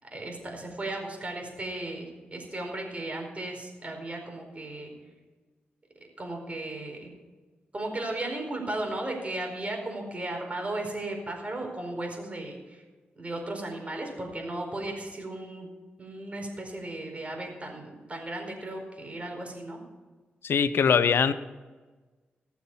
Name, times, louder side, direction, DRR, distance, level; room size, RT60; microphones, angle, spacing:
voice 1, 0.0-4.9 6.2-7.1 7.7-12.8 13.1-15.7 16.0-19.8, right 2 dB, 35° right, 2 dB, 4.6 m, -35 dB
voice 2, 20.4-21.3, left 6 dB, 80° left, 14 dB, 0.7 m, -22 dB
18.5 x 7.2 x 5.6 m, 1.3 s
cardioid pair, 60°, 4 cm